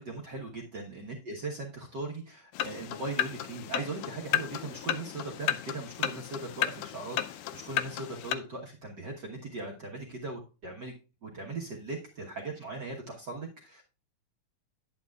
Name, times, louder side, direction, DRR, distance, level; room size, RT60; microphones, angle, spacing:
voice 1, 0.0-10.9 11.2-13.8, right 3 dB, 65° right, -1 dB, 1.0 m, -39 dB
sound 1, 2.5-8.3, left 12 dB, 80° left, 2.2 m, -33 dB
10.0 x 9.1 x 2.4 m, 0.32 s
omnidirectional pair, 3.9 m